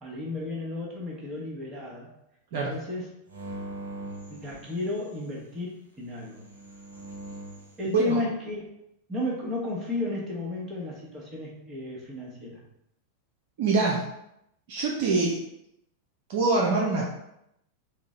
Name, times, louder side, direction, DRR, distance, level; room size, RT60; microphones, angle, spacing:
voice 1, 0.0-2.1 2.6-3.1 4.3-6.4 7.8-8.6 9.1-12.6, left 2 dB, 20° right, -3 dB, 1.1 m, -33 dB
sound 1, 3.3-5.3 6.3-7.8, right 1 dB, 70° right, 0.8 m, -41 dB
voice 2, 13.6-14.1 14.7-15.4 16.3-17.1, right 3 dB, 50° right, -2 dB, 0.5 m, -24 dB
3.9 x 2.1 x 3.6 m, 0.81 s
figure-of-eight pair, 90°, 0 cm